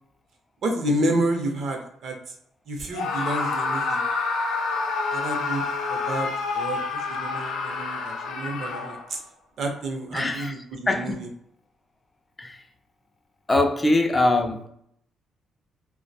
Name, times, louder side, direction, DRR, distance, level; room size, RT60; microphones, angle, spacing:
voice 1, 0.6-2.3 2.7-4.0 5.1-9.2 9.6-11.3, right 1 dB, 65° right, 0.6 m, -30 dB
Screaming, 2.9-9.2, left 4 dB, 85° left, 0.5 m, -28 dB
voice 2, 10.1-10.5 10.9-11.2 12.4-12.6 13.5-14.7, left 2 dB, 20° left, 0.3 m, -22 dB
2.3 x 2.1 x 2.7 m
cardioid pair, 90°, 0 cm